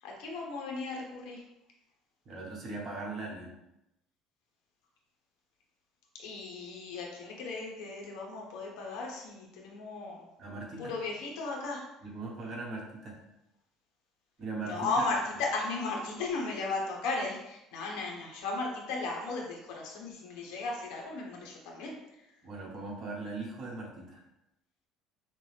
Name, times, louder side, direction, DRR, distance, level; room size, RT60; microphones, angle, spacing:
voice 1, 0.0-1.5 6.2-10.3 10.8-11.8 14.6-22.3, left 3 dB, 85° left, -1 dB, 1.0 m, -36 dB
voice 2, 2.2-3.5 10.4-10.9 12.0-13.2 14.4-14.9 22.4-24.2, right 3 dB, 40° right, -2 dB, 1.1 m, -39 dB
5.9 x 2.0 x 3.3 m, 0.87 s
cardioid pair, 140°, 0 cm